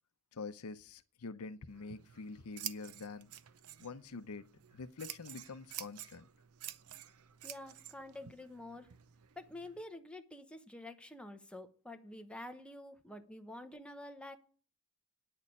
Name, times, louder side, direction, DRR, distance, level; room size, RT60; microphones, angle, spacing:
voice 1, 0.3-3.3 3.8-6.3, left 4 dB, 80° left, 0.7 m, -46 dB
Scissors, 1.7-9.8, right 12 dB, 75° right, 0.6 m, -50 dB
voice 2, 7.4-8.9 9.4-14.4, left 1 dB, 5° left, 1.0 m, -48 dB
9.4 x 6.7 x 8.5 m
head